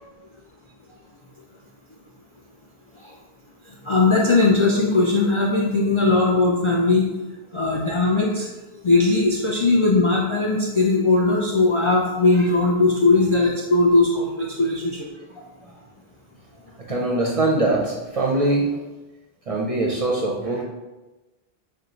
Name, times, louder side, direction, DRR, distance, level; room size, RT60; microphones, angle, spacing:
voice 1, 3.7-7.1 7.5-8.5 8.8-15.1, left 3 dB, 50° left, -3 dB, 0.4 m, -19 dB
voice 2, 16.9-18.8 19.5-20.6, right 2 dB, 45° right, -2 dB, 0.5 m, -22 dB
4.5 x 2.2 x 3.8 m, 1.1 s
omnidirectional pair, 1.0 m